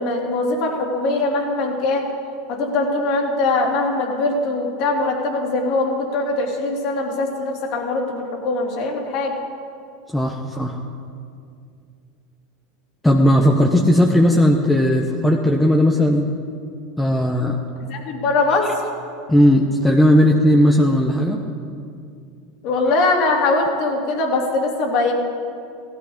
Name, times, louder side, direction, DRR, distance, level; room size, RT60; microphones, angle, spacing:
voice 1, 0.0-2.1 2.5-9.3 17.9-18.7 22.6-25.1, left 2 dB, 60° left, -1 dB, 3.2 m, -21 dB
voice 2, 10.1-10.8 13.0-16.2 17.0-17.6 19.3-21.4, equal, 5° left, 1 dB, 1.1 m, -16 dB
16.0 x 13.0 x 5.2 m, 2.4 s
supercardioid pair, 110°, 0 cm